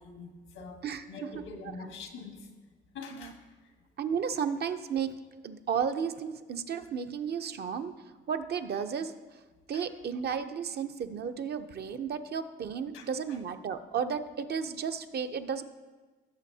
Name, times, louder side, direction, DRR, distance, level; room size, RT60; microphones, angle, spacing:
voice 1, 0.0-0.8 1.1-2.5 2.9-3.4 4.3-4.5 9.7-9.9 12.9-13.4, left 4 dB, 85° left, 4 dB, 1.4 m, -44 dB
voice 2, 4.0-5.1 5.4-7.9 8.3-9.1 9.7-15.6, right 7 dB, 55° right, 8 dB, 0.7 m, -33 dB
16.5 x 7.0 x 2.8 m, 1.3 s
cardioid pair, 90°, 20 cm